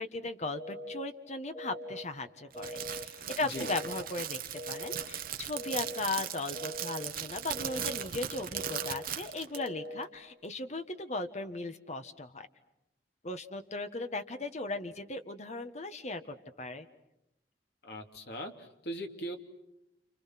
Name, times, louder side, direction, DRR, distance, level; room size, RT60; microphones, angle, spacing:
voice 1, 0.0-4.4 4.7-12.5 13.2-16.9, left 2 dB, 40° left, 8 dB, 1.6 m, -37 dB
sound 1, 0.5-1.0 1.5-2.0 2.5-3.0 3.5-4.0 4.5-5.0 5.5-6.0 6.5-7.0 7.5-8.0 8.5-9.0 9.5-10.0, equal, 10° left, 4.0 m, -42 dB
Crackle, 2.5-9.7, right 10 dB, 55° right, 1.3 m, -38 dB
voice 2, 17.8-19.4, equal, 65° left, 4 dB, 2.9 m, -40 dB
29.5 x 29.5 x 6.0 m, 0.89 s
head